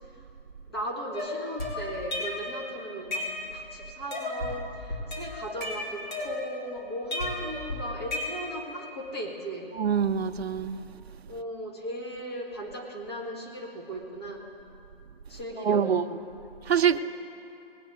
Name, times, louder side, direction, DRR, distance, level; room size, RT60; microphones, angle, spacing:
voice 1, 0.7-9.7 11.3-14.5 15.3-15.9 16.9-17.0, right 1 dB, 25° left, -1 dB, 1.8 m, -37 dB
sound 1, 1.1-2.6 2.9-3.7 4.1-4.6 4.9-6.7 7.1-8.7, left 2 dB, 50° left, 3.8 m, -33 dB
voice 2, 9.7-10.8 15.6-16.0 16.7-17.0, right 8 dB, 85° right, 10 dB, 0.7 m, -24 dB
20.0 x 8.8 x 4.6 m, 2.7 s
hypercardioid pair, 175°, 30 cm